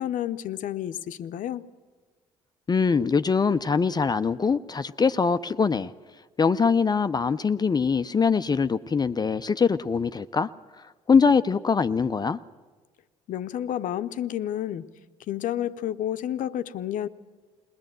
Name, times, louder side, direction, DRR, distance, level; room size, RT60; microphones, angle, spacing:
voice 1, 0.0-1.7 13.3-14.9 15.3-17.1, left 11 dB, 55° left, 0.8 m, -30 dB
voice 2, 2.7-5.9 6.4-10.5 11.1-12.4, left 5 dB, 25° left, 0.6 m, -23 dB
21.0 x 19.5 x 7.7 m
hypercardioid pair, 55°, 16 cm